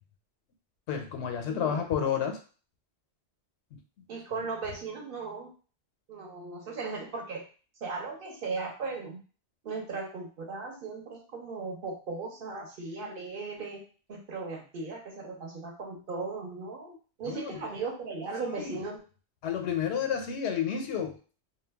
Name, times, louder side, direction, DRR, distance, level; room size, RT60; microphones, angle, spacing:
voice 1, 0.9-2.4 17.3-17.6 18.6-18.8 19.4-21.2, left 8 dB, 90° left, 4 dB, 0.9 m, -30 dB
voice 2, 1.5-1.8 4.1-5.5 6.1-7.4 7.8-9.2 9.6-13.8 14.1-19.0, right 4 dB, 60° right, 1 dB, 0.8 m, -37 dB
2.2 x 2.2 x 3.3 m, 0.38 s
omnidirectional pair, 1.1 m